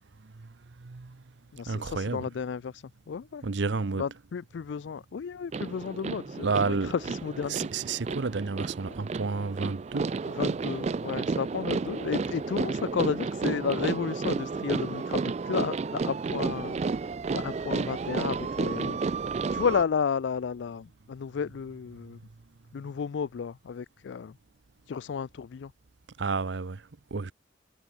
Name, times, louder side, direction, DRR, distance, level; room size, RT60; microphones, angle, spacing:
voice 1, 0.2-1.2 1.6-2.2 3.4-4.1 6.4-6.9 7.5-10.4 21.9-22.2 26.2-27.3, right 4 dB, 75° right, 0.7 m, -31 dB
voice 2, 1.5-3.4 4.0-7.7 10.4-16.8 17.3-19.0 19.5-22.2 22.7-24.3 24.9-25.7, left 6 dB, 75° left, 0.4 m, -32 dB
sound 1, 5.5-19.8, right 4 dB, 35° right, 0.3 m, -32 dB
head